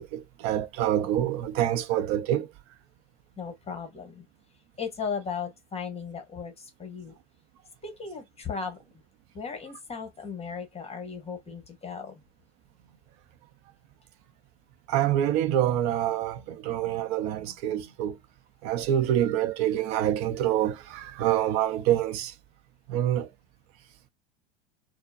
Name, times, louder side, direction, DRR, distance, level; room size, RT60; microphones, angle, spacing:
voice 1, 0.0-2.5 14.9-18.2 18.6-22.3 22.9-23.3, right 11 dB, 50° right, 0.7 m, -26 dB
voice 2, 3.4-4.2 4.8-7.1 7.8-8.8 9.3-12.2, left 6 dB, 20° left, 1.1 m, -36 dB
4.2 x 2.1 x 2.4 m
hypercardioid pair, 85°, 32 cm